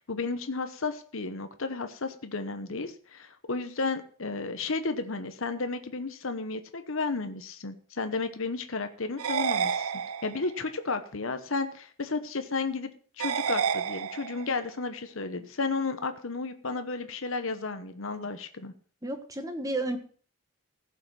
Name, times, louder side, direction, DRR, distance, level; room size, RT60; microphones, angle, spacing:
voice 1, 0.0-9.9 10.2-12.9 13.2-18.7, left 3 dB, 65° left, 9 dB, 1.0 m, -33 dB
sound 1, 9.2-10.6 13.2-14.6, right 7 dB, 80° right, 0.6 m, -30 dB
voice 2, 19.0-20.0, right 2 dB, 15° right, 6 dB, 1.3 m, -32 dB
15.5 x 5.8 x 6.0 m, 0.44 s
head